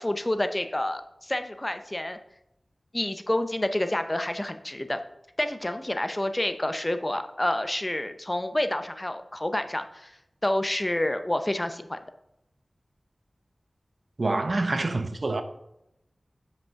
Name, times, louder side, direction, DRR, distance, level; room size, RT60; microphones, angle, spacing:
voice 1, 0.0-2.2 2.9-5.0 5.4-10.1 10.4-12.0, left 1 dB, 25° left, 0.6 m, -28 dB
voice 2, 14.2-15.4, right 2 dB, 60° right, 0.7 m, -26 dB
5.9 x 5.4 x 5.7 m
wide cardioid pair, 70°, 0 cm